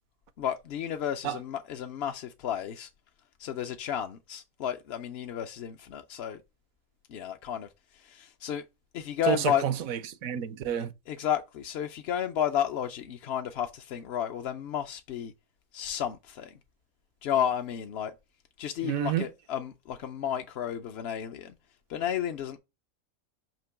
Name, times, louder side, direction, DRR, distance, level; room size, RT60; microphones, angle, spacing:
voice 1, 0.4-2.9 3.4-6.4 7.1-8.6 8.9-9.7 11.1-15.3 15.7-16.5 17.2-18.1 18.6-21.5 21.9-22.6, left 9 dB, 60° left, 0.7 m, -32 dB
voice 2, 9.3-10.9 18.8-19.3, right 9 dB, 80° right, 1.1 m, -29 dB
5.9 x 2.9 x 5.6 m
omnidirectional pair, 1.4 m